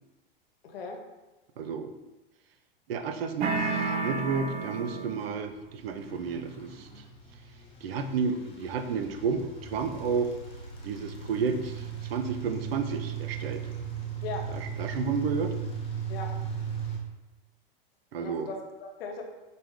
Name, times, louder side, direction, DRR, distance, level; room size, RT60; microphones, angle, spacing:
voice 1, 0.6-1.0 14.2-14.5 16.1-16.3 18.2-19.2, left 4 dB, 80° left, 3 dB, 0.8 m, -38 dB
voice 2, 1.6-1.9 2.9-6.9 7.8-10.3 10.8-11.8 12.1-13.6 14.5-15.5 18.1-18.5, right 5 dB, 90° right, 8 dB, 0.5 m, -31 dB
sound 1, 3.4-5.3, right 4 dB, 25° right, 0.3 m, -30 dB
sound 2, 5.0-17.0, right 7 dB, 20° left, 0.9 m, -38 dB
5.3 x 2.1 x 3.1 m, 1.1 s
hypercardioid pair, 115°, 29 cm